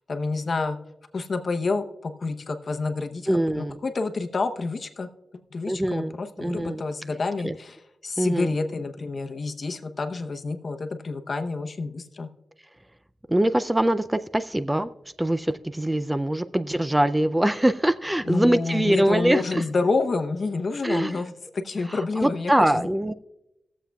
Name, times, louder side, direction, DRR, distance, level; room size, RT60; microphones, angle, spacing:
voice 1, 0.1-0.8 1.1-3.3 3.5-5.1 5.5-7.8 8.0-12.3 18.2-22.9, left 3 dB, 55° left, 7 dB, 0.8 m, -28 dB
voice 2, 3.3-3.8 5.7-6.8 7.4-7.6 8.2-8.6 13.3-14.9 15.2-19.6 20.8-21.2 21.9-23.1, right 1 dB, 15° right, 13 dB, 0.3 m, -23 dB
20.5 x 7.3 x 2.3 m, 0.91 s
wide cardioid pair, 80°, 0 cm